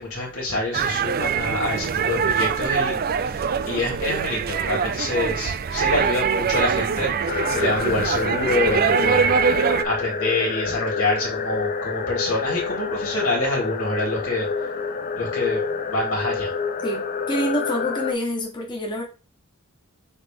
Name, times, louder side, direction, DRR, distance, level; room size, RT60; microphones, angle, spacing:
voice 1, 0.0-14.5 15.2-16.5, left 2 dB, 85° left, -2 dB, 3.6 m, -26 dB
sound 1, 0.7-9.8, right 6 dB, 45° right, 0.4 m, -23 dB
sound 2, 7.3-18.1, left 5 dB, 40° left, 0.6 m, -28 dB
voice 2, 16.8-19.0, left 1 dB, 20° left, -1 dB, 1.3 m, -27 dB
8.0 x 3.4 x 3.6 m, 0.34 s
head